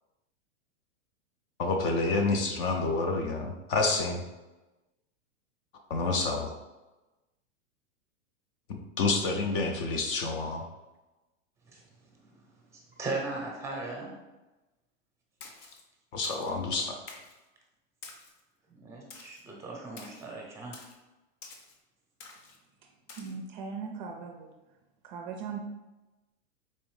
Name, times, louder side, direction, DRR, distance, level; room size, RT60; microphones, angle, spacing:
voice 1, 1.6-4.2 5.9-6.5 8.7-10.6 16.1-17.0, left 3 dB, 45° left, 3 dB, 0.6 m, -28 dB
voice 2, 13.0-14.2 18.7-20.8, right 3 dB, 5° right, -1 dB, 0.7 m, -37 dB
Splash splatter, 15.4-15.8 16.2-16.5 17.1-17.4 18.0-18.4 19.1-19.4 20.0-20.3 20.7-21.0 21.4-21.8 22.2-22.6 23.1-23.3, left 4 dB, 70° left, 0.8 m, -48 dB
voice 3, 23.2-24.5 25.1-25.6, right 5 dB, 40° right, 2 dB, 0.4 m, -38 dB
4.2 x 2.6 x 3.1 m, 1.1 s
hypercardioid pair, 135°, 38 cm